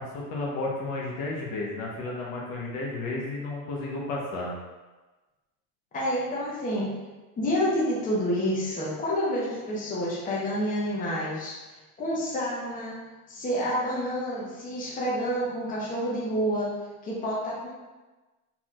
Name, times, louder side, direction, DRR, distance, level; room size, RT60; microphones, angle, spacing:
voice 1, 0.0-4.5, left 2 dB, 50° left, -3 dB, 1.0 m, -32 dB
voice 2, 5.9-6.9 7.4-11.5 12.0-13.0 13.3-16.7 17.0-17.7, equal, 15° left, -6 dB, 1.0 m, -28 dB
4.2 x 4.2 x 2.4 m, 1.2 s
supercardioid pair, 140°, 46 cm